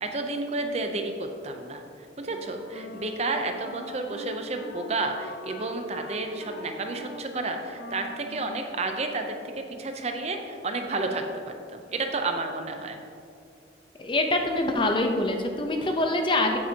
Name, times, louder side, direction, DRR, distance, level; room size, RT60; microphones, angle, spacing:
voice 1, 0.0-1.8 2.2-13.0, right 3 dB, 35° right, 5 dB, 0.5 m, -31 dB
Wind instrument woodwind instrument, 2.3-9.7, left 2 dB, 65° left, 0.8 m, -43 dB
voice 2, 14.0-16.6, left 2 dB, 25° left, 4 dB, 0.6 m, -25 dB
8.7 x 8.6 x 2.8 m, 2.4 s
head